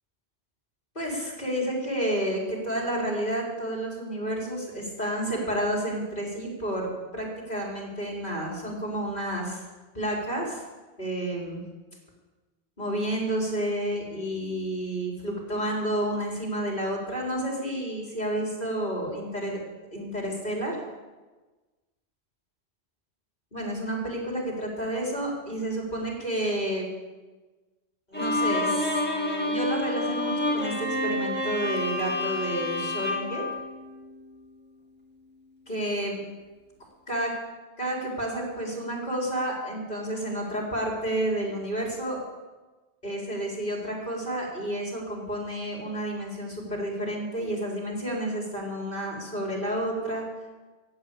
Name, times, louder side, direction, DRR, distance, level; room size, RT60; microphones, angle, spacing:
voice 1, 0.9-9.6 9.9-10.6 11.0-11.6 12.8-19.6 19.9-20.8 23.5-26.9 28.1-29.0 29.4-33.5 35.7-36.2 37.1-37.3 37.8-42.2 43.0-50.3, right 1 dB, 50° left, -2 dB, 4.5 m, -30 dB
Bowed string instrument, 28.1-34.4, left 1 dB, 10° left, 2.3 m, -29 dB
15.5 x 8.4 x 8.6 m, 1.2 s
omnidirectional pair, 1.1 m